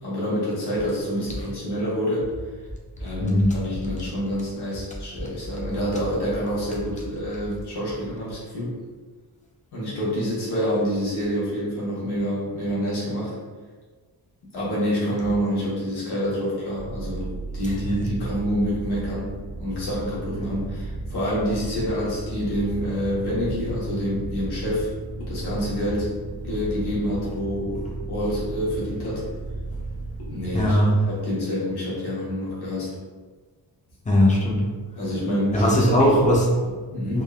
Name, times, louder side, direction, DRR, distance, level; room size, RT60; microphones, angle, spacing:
voice 1, 0.0-2.3 3.0-8.8 9.7-13.4 14.5-24.9 25.3-26.1 26.5-29.2 30.3-30.8 31.1-33.0 35.0-36.2 36.9-37.2, equal, 70° left, -7 dB, 1.1 m, -27 dB
voice 2, 3.2-3.5 30.5-31.0 34.1-34.7 35.5-36.7 37.1-37.2, equal, 20° left, -3 dB, 0.4 m, -19 dB
sound 1, 16.8-30.7, right 2 dB, 50° right, 0.8 m, -34 dB
3.4 x 2.2 x 2.2 m, 1.4 s
wide cardioid pair, 160°, 42 cm